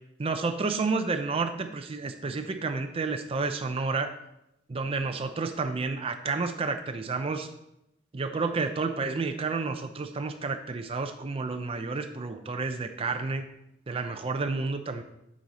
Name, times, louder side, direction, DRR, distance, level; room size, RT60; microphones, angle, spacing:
voice 1, 0.2-4.2 4.7-7.5 8.1-13.4 13.9-15.0, right 4 dB, 30° right, 7 dB, 0.5 m, -30 dB
8.7 x 6.2 x 4.1 m, 0.85 s
head